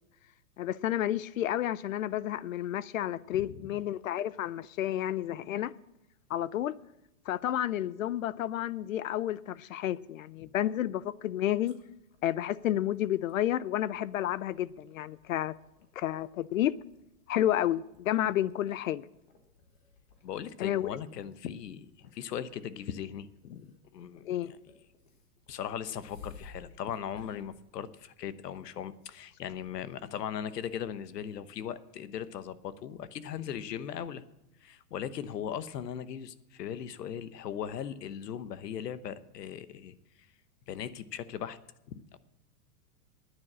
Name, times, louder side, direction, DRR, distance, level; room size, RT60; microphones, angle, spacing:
voice 1, 0.6-5.7 6.3-6.8 7.3-11.8 12.2-15.5 16.0-16.7 17.3-19.1 20.6-20.9 24.3-24.5, left 12 dB, 60° left, 0.5 m, -31 dB
sound 1, 11.3-28.5, left 4 dB, 30° left, 1.4 m, -58 dB
voice 2, 20.2-24.7 25.5-34.2 34.6-40.3 40.7-41.6 41.9-42.2, left 9 dB, 90° left, 1.1 m, -39 dB
11.0 x 9.7 x 7.4 m
supercardioid pair, 180°, 47 cm